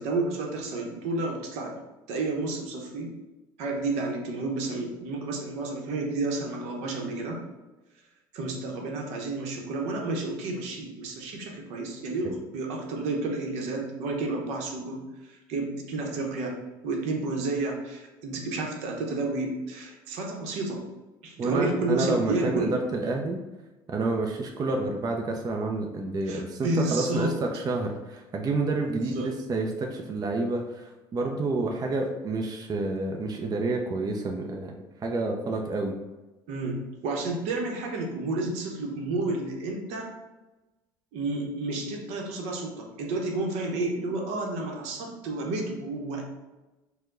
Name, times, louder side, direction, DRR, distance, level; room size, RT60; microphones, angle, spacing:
voice 1, 0.0-1.8 2.1-3.1 3.6-7.4 8.3-16.6 16.8-20.8 21.2-22.7 26.3-27.3 28.9-29.3 36.5-40.1 41.1-46.2, right 2 dB, 70° right, 1 dB, 0.8 m, -31 dB
voice 2, 21.4-23.4 23.9-34.7 35.0-36.0, right 2 dB, 35° right, 2 dB, 0.5 m, -29 dB
4.4 x 2.2 x 3.7 m, 1.1 s
hypercardioid pair, 70°, 12 cm